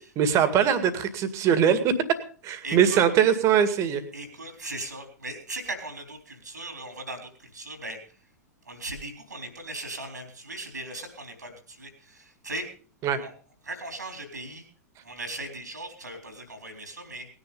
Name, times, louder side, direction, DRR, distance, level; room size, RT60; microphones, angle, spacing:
voice 1, 0.2-1.9 2.4-4.0 13.0-13.2, right 8 dB, 30° right, 11 dB, 2.1 m, -22 dB
voice 2, 2.6-3.0 4.1-8.0 8.7-12.7 13.2-13.3 13.6-14.7 15.0-17.3, right 2 dB, 80° right, 6 dB, 3.9 m, -38 dB
19.0 x 10.5 x 5.4 m, 0.42 s
figure-of-eight pair, 95°, 9 cm